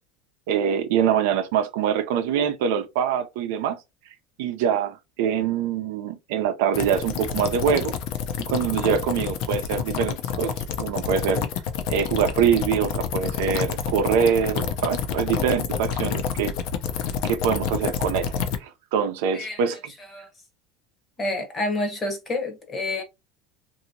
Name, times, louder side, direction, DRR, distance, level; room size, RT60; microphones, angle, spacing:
voice 1, 0.5-3.8 4.4-8.0 8.5-11.4 11.9-16.5 17.2-18.3 18.6-19.8, right 8 dB, 75° right, 0.6 m, -24 dB
sound 1, 6.7-18.6, left 8 dB, 55° left, 0.6 m, -28 dB
voice 2, 21.2-23.0, left 2 dB, 20° left, 0.9 m, -28 dB
2.9 x 2.7 x 2.6 m
supercardioid pair, 155°, 0 cm